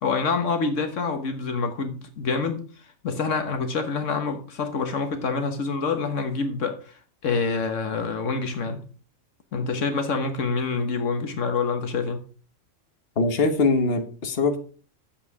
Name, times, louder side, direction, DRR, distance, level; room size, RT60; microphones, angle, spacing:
voice 1, 0.0-8.8 9.5-12.2, left 4 dB, 75° left, 1.5 m, -27 dB
voice 2, 13.2-14.6, left 3 dB, 50° left, 1.5 m, -22 dB
9.3 x 7.5 x 4.7 m
omnidirectional pair, 1.3 m